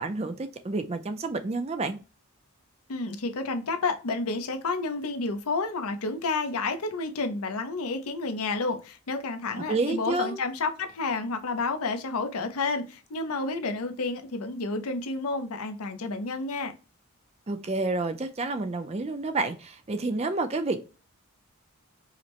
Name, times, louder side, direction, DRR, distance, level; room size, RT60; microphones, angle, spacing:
voice 1, 0.0-2.0 9.6-10.4 17.5-20.8, right 3 dB, 30° right, 0.4 m, -29 dB
voice 2, 2.9-16.7, left 3 dB, 80° left, 0.6 m, -30 dB
4.9 x 2.1 x 2.9 m
head